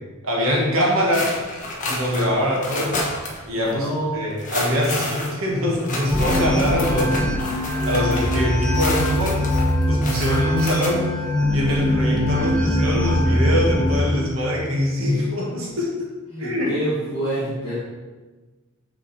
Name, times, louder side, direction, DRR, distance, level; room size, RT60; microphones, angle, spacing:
voice 1, 0.2-1.3 1.9-3.0 3.5-7.2 7.5-9.4 9.8-16.1 16.4-16.7, left 1 dB, 80° right, -3 dB, 1.7 m, -23 dB
sound 1, 1.1-3.4 3.7-3.8 4.3-10.9, left 2 dB, 40° left, 1.2 m, -30 dB
voice 2, 3.7-4.2 16.3-17.8, right 1 dB, 20° left, -11 dB, 1.5 m, -27 dB
sound 2, 6.1-14.1, equal, 5° left, 0.5 m, -22 dB
6.3 x 4.0 x 4.3 m, 1.3 s
head